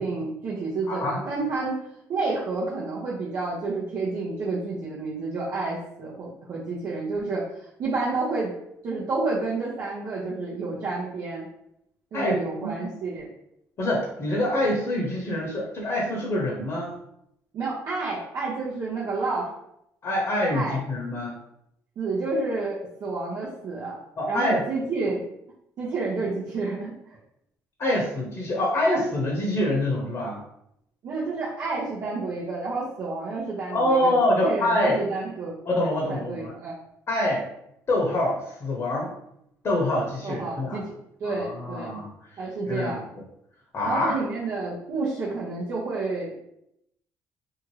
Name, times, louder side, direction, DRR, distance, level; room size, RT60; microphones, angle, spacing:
voice 1, 0.0-1.8 2.1-8.5 8.8-11.5 12.1-13.3 17.5-19.5 20.5-20.8 22.0-24.0 24.3-25.2 25.8-26.9 31.0-34.1 34.4-35.6 36.1-36.7 40.2-40.9 41.2-42.0 42.4-43.0 43.8-46.4, right 3 dB, 60° right, -7 dB, 0.7 m, -29 dB
voice 2, 0.9-1.2 12.1-12.3 12.6-12.7 13.8-16.9 20.0-21.4 24.2-24.6 27.8-30.4 33.7-35.0 35.6-36.5 37.1-37.4 37.9-39.1 39.6-40.8 41.2-42.4 42.7-43.0 43.7-44.2, left 1 dB, 40° left, -2 dB, 0.8 m, -25 dB
2.8 x 2.4 x 3.0 m, 0.79 s
supercardioid pair, 80°, 7 cm